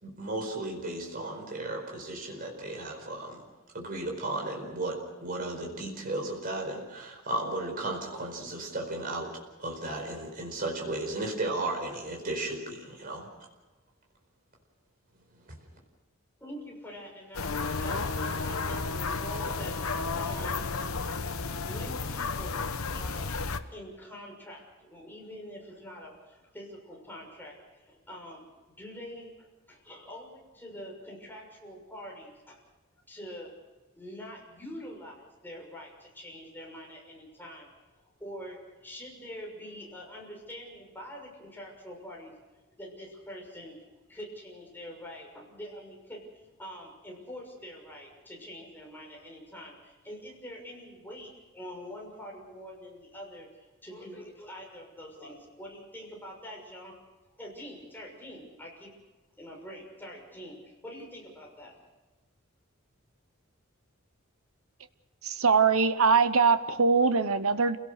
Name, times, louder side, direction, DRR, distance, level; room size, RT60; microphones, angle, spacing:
voice 1, 0.0-3.4 3.7-9.3 9.6-13.3 15.5-15.6, right 2 dB, 45° right, 1 dB, 4.7 m, -34 dB
voice 2, 16.4-32.6 33.1-33.5 34.0-37.7 38.2-42.3 42.8-43.8 44.1-56.9 57.4-59.0 59.4-61.7, equal, 10° left, -1 dB, 6.4 m, -45 dB
sound 1, 17.3-23.6, left 4 dB, 90° left, 1.1 m, -32 dB
voice 3, 65.2-67.8, right 5 dB, 85° right, 11 dB, 0.9 m, -22 dB
28.5 x 17.5 x 6.6 m, 1.2 s
head